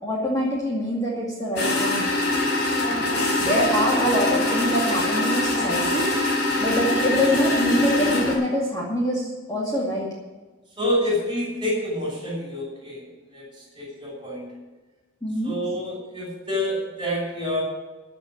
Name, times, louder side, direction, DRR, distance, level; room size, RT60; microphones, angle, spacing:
voice 1, 0.0-2.0 3.4-6.1 6.6-10.1 15.2-15.6, equal, 15° left, -5 dB, 2.3 m, -25 dB
sound 1, 1.6-8.3, left 2 dB, 50° left, 4.9 m, -23 dB
voice 2, 10.8-13.0 13.3-13.4 13.8-14.5 15.4-17.6, left 1 dB, 20° right, -2 dB, 5.8 m, -27 dB
14.0 x 6.8 x 9.2 m, 1.2 s
head